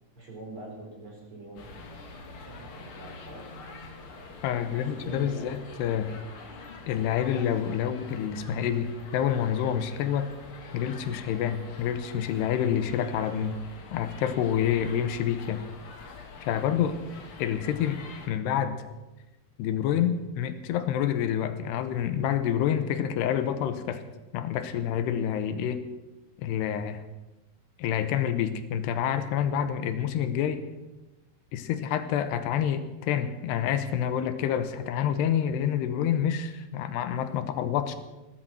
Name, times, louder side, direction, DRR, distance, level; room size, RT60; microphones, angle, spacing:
voice 1, 0.2-1.7 2.4-3.6 4.5-5.5, right 2 dB, 30° right, -2 dB, 5.0 m, -43 dB
sound 1, 1.6-18.3, left 3 dB, 45° left, 1.9 m, -46 dB
voice 2, 4.4-6.1 6.9-10.3 10.7-13.6 13.9-15.6 16.5-17.0 17.4-18.0 18.3-18.8 19.6-24.0 24.3-25.8 26.4-27.0 27.8-30.6 31.5-38.0, left 9 dB, 90° left, 10 dB, 3.1 m, -28 dB
17.0 x 13.0 x 6.0 m, 1.1 s
omnidirectional pair, 4.7 m